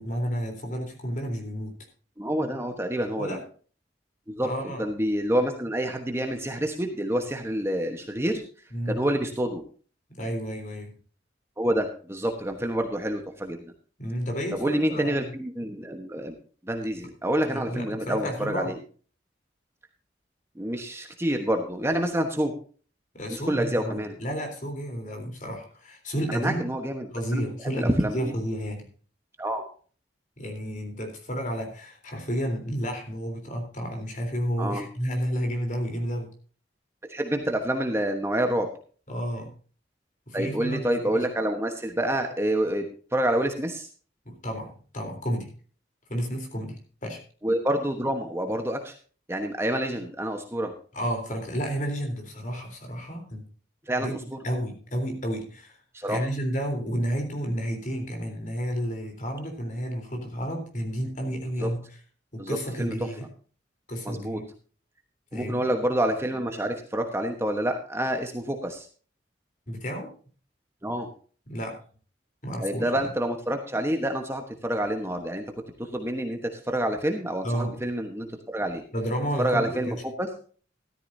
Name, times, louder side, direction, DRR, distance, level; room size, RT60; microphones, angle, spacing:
voice 1, 0.0-1.8 3.2-3.4 4.4-4.8 8.7-9.0 10.1-11.0 14.0-15.3 17.5-18.7 23.1-26.7 27.1-28.9 30.4-36.3 39.1-39.5 40.3-41.3 44.3-45.5 46.1-47.2 50.9-53.5 54.0-55.8 56.1-62.0 62.3-63.3 63.9-64.5 65.3-65.7 69.7-70.1 71.5-71.8 72.4-73.0 77.4-77.8 78.9-80.0, equal, 45° left, 3 dB, 3.7 m, -31 dB
voice 2, 2.2-3.4 4.3-4.5 4.8-8.4 8.9-9.6 11.6-13.6 14.6-16.3 16.6-18.8 20.6-22.5 23.3-24.1 26.3-27.0 27.3-27.5 27.8-28.2 29.4-29.6 34.6-34.8 37.1-38.7 40.3-42.8 43.1-43.9 47.4-48.9 49.3-50.7 53.9-54.2 55.9-56.2 61.6-61.7 62.4-62.9 64.0-64.4 65.3-68.9 70.8-71.1 72.6-75.4 75.8-76.4 76.7-78.8 79.4-80.3, right 1 dB, 15° right, 5 dB, 1.1 m, -27 dB
13.5 x 13.0 x 2.7 m, 0.40 s
head